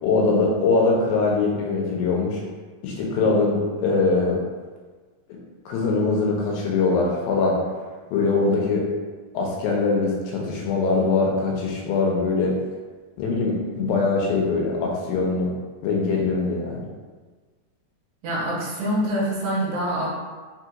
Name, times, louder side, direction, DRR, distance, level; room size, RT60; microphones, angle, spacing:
voice 1, 0.0-2.4 2.8-4.4 5.7-7.6 8.1-8.9 9.3-12.5 13.2-15.5 15.8-16.9, left 3 dB, 90° left, -1 dB, 2.4 m, -22 dB
voice 2, 18.2-20.1, equal, 75° right, -6 dB, 2.5 m, -25 dB
5.6 x 2.8 x 2.3 m, 1.4 s
omnidirectional pair, 4.1 m